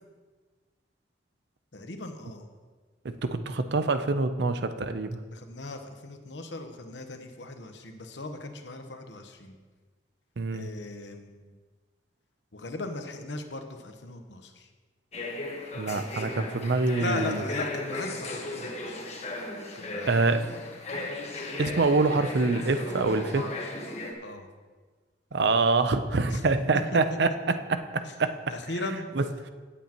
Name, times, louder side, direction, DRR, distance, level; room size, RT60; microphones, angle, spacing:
voice 1, 1.7-2.5 5.3-9.6 10.5-11.5 12.5-14.7 17.0-19.0 19.7-20.1 24.2-24.5 26.3-26.4 28.0-28.1 28.5-29.1, left 2 dB, 75° left, 5 dB, 1.1 m, -38 dB
voice 2, 3.0-5.2 10.4-10.7 15.7-17.4 20.1-20.5 21.6-23.5 25.3-28.4 29.2-29.3, right 3 dB, 65° right, 10 dB, 0.6 m, -25 dB
sound 1, 15.1-24.1, left 2 dB, 40° left, 1.4 m, -36 dB
17.0 x 8.3 x 3.0 m, 1.4 s
head